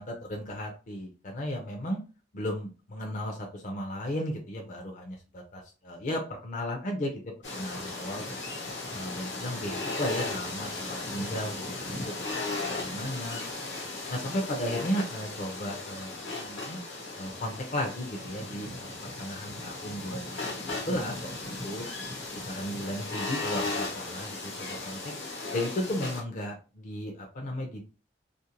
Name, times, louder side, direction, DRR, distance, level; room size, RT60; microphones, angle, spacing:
voice 1, 0.0-2.0 2.3-7.2 7.5-8.5 8.9-12.3 12.7-13.4 14.1-16.8 17.2-18.9 19.2-21.9 22.5-25.1 25.5-27.8, equal, 45° left, 1 dB, 0.5 m, -35 dB
sound 1, 7.4-26.2, left 2 dB, 90° left, 1.0 m, -36 dB
2.5 x 2.1 x 2.9 m, 0.33 s
head